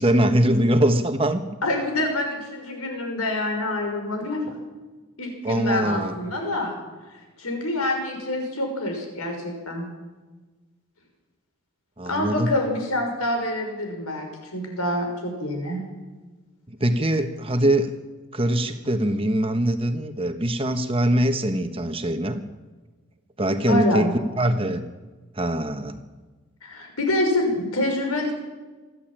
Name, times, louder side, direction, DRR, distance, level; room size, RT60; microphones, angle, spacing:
voice 1, 0.0-1.4 5.4-6.1 12.0-12.5 16.7-17.9 18.3-22.4 23.4-24.8 25.4-26.0, right 1 dB, 25° right, 7 dB, 1.3 m, -22 dB
voice 2, 1.6-4.4 5.2-6.8 7.4-9.9 12.1-14.3 14.5-15.8 23.7-24.1 26.6-28.3, left 1 dB, 85° left, 3 dB, 5.9 m, -26 dB
27.0 x 11.0 x 8.9 m, 1.3 s
head